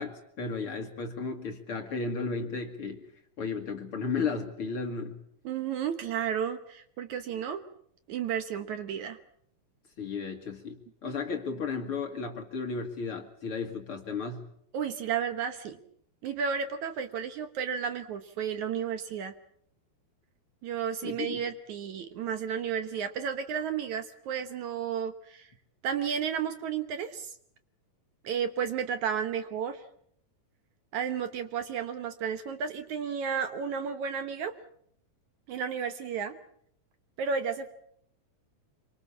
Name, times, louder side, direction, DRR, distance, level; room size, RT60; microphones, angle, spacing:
voice 1, 0.0-3.0 3.4-5.2 10.0-14.4 21.0-21.4, left 4 dB, 45° left, 5 dB, 2.2 m, -34 dB
voice 2, 5.4-7.6 8.1-9.2 11.0-11.1 14.7-15.8 16.2-19.3 20.6-25.5 25.8-27.3 28.2-29.8 30.9-34.5 35.5-36.4 37.2-37.7, right 7 dB, 65° right, 9 dB, 2.2 m, -32 dB
26.0 x 24.0 x 7.2 m, 0.69 s
omnidirectional pair, 4.1 m